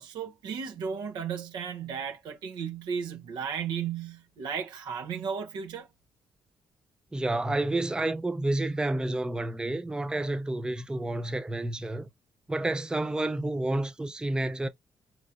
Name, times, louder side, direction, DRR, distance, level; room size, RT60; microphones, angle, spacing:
voice 1, 0.0-5.9, right 7 dB, 90° right, 0.9 m, -34 dB
voice 2, 7.1-12.1 12.5-14.7, right 2 dB, 10° right, 0.5 m, -30 dB
4.5 x 3.0 x 2.5 m
cardioid pair, 105°, 7 cm